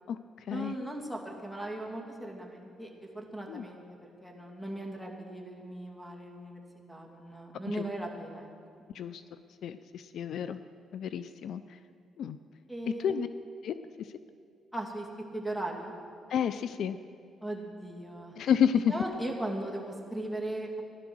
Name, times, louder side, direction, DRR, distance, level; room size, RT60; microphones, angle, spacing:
voice 1, 0.5-6.6 6.9-8.9 12.7-13.3 14.7-15.1 15.3-15.9 17.4-18.4 18.9-20.8, right 1 dB, 5° left, 1 dB, 2.5 m, -38 dB
voice 2, 9.6-10.6 10.9-11.8 12.2-12.4 12.9-13.3 13.6-14.1 16.3-17.0 18.4-18.9, left 8 dB, 70° left, 12 dB, 0.5 m, -30 dB
16.0 x 11.5 x 6.3 m, 2.5 s
cardioid pair, 90°, 0 cm